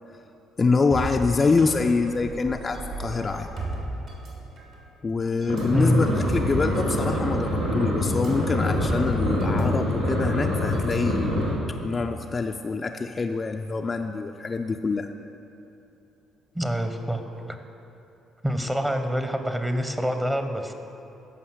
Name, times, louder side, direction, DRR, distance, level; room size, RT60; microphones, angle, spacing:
voice 1, 0.6-3.5 5.0-11.4 11.8-15.1, left 4 dB, 30° left, 4 dB, 0.4 m, -25 dB
sound 1, 0.9-4.8 5.4-9.6 9.9-10.1 10.7-11.6, right 2 dB, 55° right, 2.6 m, -35 dB
sound 2, 5.5-11.5, left 1 dB, 80° right, 1.7 m, -25 dB
voice 2, 16.5-17.2 17.5-17.6 18.4-20.7, equal, 10° right, 7 dB, 0.9 m, -25 dB
14.5 x 5.6 x 6.2 m, 2.8 s
figure-of-eight pair, 45°, 0 cm